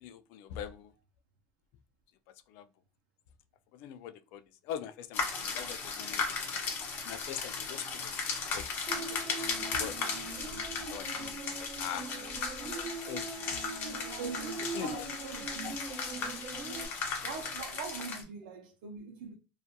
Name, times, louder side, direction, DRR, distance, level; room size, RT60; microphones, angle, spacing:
voice 1, 0.0-0.9 2.5-2.7 3.7-6.6 7.0-10.2 10.9-12.1 13.0-13.6 14.6-15.1 15.6-15.7, left 9 dB, 70° left, 0.3 m, -43 dB
sound 1, 5.1-18.2, left 5 dB, 50° left, 0.8 m, -36 dB
Human voice, 8.9-16.9, right 4 dB, 45° right, 0.8 m, -42 dB
voice 2, 14.1-15.7 16.7-16.8 17.2-19.3, right 6 dB, 85° right, 0.5 m, -42 dB
2.7 x 2.3 x 2.2 m
supercardioid pair, 115°, 4 cm